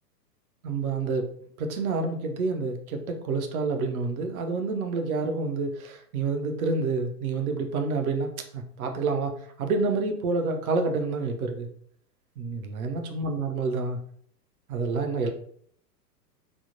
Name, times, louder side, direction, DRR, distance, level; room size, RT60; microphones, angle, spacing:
voice 1, 0.6-1.3 1.6-9.3 9.6-11.7 12.4-14.0 14.7-15.3, right 3 dB, 60° right, 4 dB, 0.7 m, -28 dB
3.5 x 2.0 x 2.5 m, 0.63 s
hypercardioid pair, 110°, 48 cm